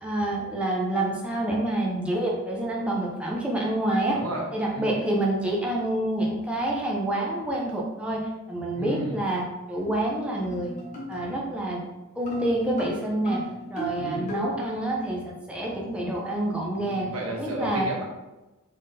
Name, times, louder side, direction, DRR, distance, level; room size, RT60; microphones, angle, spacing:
voice 1, 0.0-4.2 4.5-8.2 8.5-9.4 9.7-10.7 11.1-11.8 12.2-13.4 13.7-17.1 17.4-17.9, right 1 dB, 5° right, -3 dB, 0.5 m, -27 dB
voice 2, 4.1-4.4 4.7-4.9 8.7-9.2 14.0-14.3 16.8-18.0, right 1 dB, 80° right, -1 dB, 1.0 m, -33 dB
sound 1, 9.8-10.1 10.4-11.6 12.3-14.8 15.6-16.3, equal, 35° left, 1.0 m, -37 dB
3.9 x 3.6 x 2.7 m, 1.1 s
head